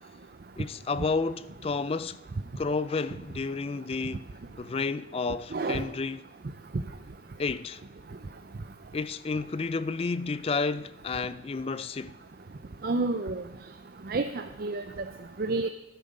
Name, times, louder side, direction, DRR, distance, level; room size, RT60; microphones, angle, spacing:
voice 1, 0.6-2.2 2.6-4.3 4.6-6.3 7.4-7.8 8.9-12.2, left 4 dB, 30° left, 0.3 m, -31 dB
voice 2, 5.5-5.9 12.8-13.4 14.1-14.8 15.4-15.7, right 3 dB, 50° right, 0.5 m, -29 dB
11.5 x 10.5 x 5.3 m
head